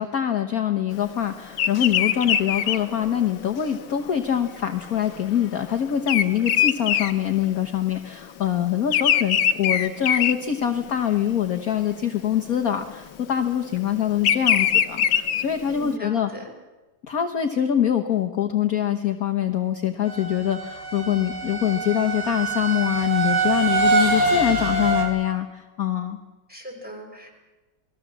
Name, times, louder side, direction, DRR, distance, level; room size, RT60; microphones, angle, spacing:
voice 1, 0.0-16.3 17.0-26.2, left 10 dB, 50° left, 6 dB, 1.5 m, -24 dB
Bird vocalization bird call bird song, 1.5-8.0 8.2-11.1 11.6-11.9 12.9-15.9, left 9 dB, 70° left, 1.7 m, -23 dB
voice 2, 15.7-16.5 26.5-27.3, left 1 dB, 5° right, 2 dB, 5.7 m, -38 dB
sound 1, 20.1-25.0, right 3 dB, 65° right, 5.0 m, -24 dB
28.5 x 19.5 x 7.4 m, 1.2 s
omnidirectional pair, 2.2 m